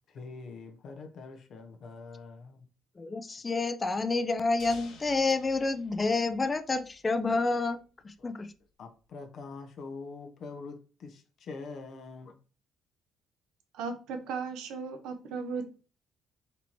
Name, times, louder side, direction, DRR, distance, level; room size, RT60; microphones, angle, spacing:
voice 1, 0.1-2.7 7.3-7.4 8.2-8.4 8.8-12.3, left 4 dB, 60° left, 0.8 m, -44 dB
voice 2, 3.0-7.8 8.0-8.5, left 3 dB, 25° left, 0.4 m, -29 dB
sound 1, 4.6-7.4, left 3 dB, 85° left, 1.5 m, -53 dB
voice 3, 13.7-15.8, right 5 dB, 90° right, 0.8 m, -36 dB
4.3 x 2.8 x 4.4 m
cardioid pair, 110°, 0 cm